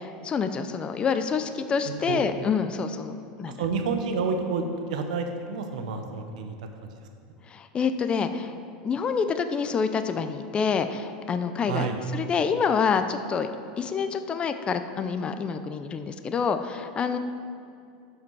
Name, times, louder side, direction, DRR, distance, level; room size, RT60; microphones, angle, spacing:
voice 1, 0.0-3.6 7.5-8.5 8.8-13.5 13.8-17.2, left 6 dB, 25° left, 9 dB, 0.5 m, -27 dB
voice 2, 1.8-2.2 3.6-6.5 11.7-12.0, right 5 dB, 80° right, 5 dB, 1.0 m, -29 dB
12.5 x 5.1 x 4.7 m, 2.4 s
supercardioid pair, 120°, 4 cm